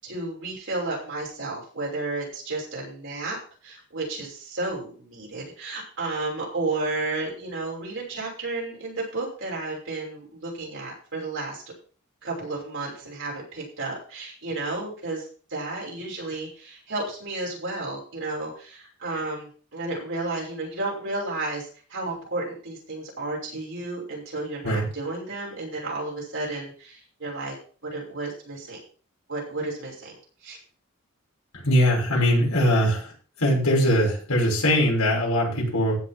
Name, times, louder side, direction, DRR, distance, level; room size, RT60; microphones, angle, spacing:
voice 1, 0.0-3.4 3.6-11.6 12.2-15.2 15.5-21.6 21.9-27.5 27.9-28.8 29.3-30.1 30.4-30.6, right 2 dB, 55° right, -3 dB, 6.1 m, -32 dB
voice 2, 31.5-33.1 33.4-36.0, equal, 85° left, -2 dB, 6.4 m, -21 dB
15.5 x 5.5 x 5.9 m, 0.40 s
head